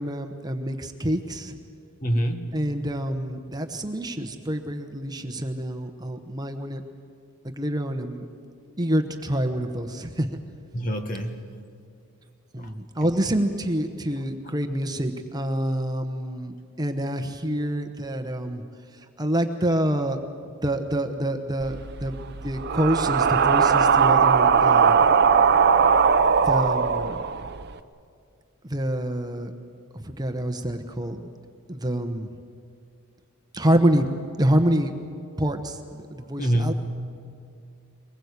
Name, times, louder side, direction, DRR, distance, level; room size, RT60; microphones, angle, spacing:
voice 1, 0.0-1.6 2.5-6.8 7.6-8.3 8.8-10.3 12.5-18.6 19.2-20.2 20.6-22.2 22.4-25.1 26.4-27.2 28.6-29.5 29.9-31.3 31.7-32.3 33.5-34.1 34.4-34.9 35.4-36.7, right 1 dB, 20° right, 6 dB, 1.0 m, -26 dB
voice 2, 2.0-2.7 10.7-11.4 12.6-12.7 36.4-36.7, right 1 dB, 40° left, 6 dB, 1.6 m, -26 dB
sound 1, 21.6-27.7, right 6 dB, 50° right, 0.7 m, -19 dB
23.5 x 20.5 x 8.2 m, 2.3 s
head